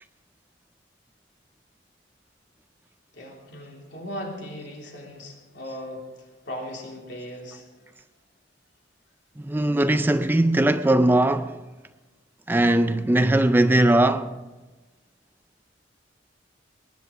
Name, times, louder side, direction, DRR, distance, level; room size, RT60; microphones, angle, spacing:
voice 1, 3.1-7.7, equal, 65° left, 3.2 m, -38 dB
voice 2, 9.4-11.6 12.5-14.4, right 1 dB, 10° right, 0.3 m, -20 dB
20.0 x 10.5 x 5.0 m
head